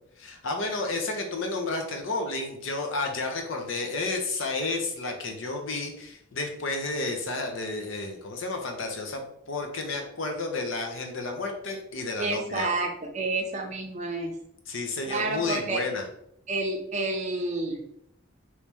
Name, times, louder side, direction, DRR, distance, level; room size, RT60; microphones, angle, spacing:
voice 1, 0.2-12.7 14.7-16.0, left 3 dB, 65° left, 3 dB, 0.6 m, -31 dB
voice 2, 12.2-14.3 15.1-15.8 16.5-17.8, right 2 dB, 35° right, 1 dB, 0.5 m, -29 dB
3.0 x 2.8 x 3.4 m, 0.73 s
head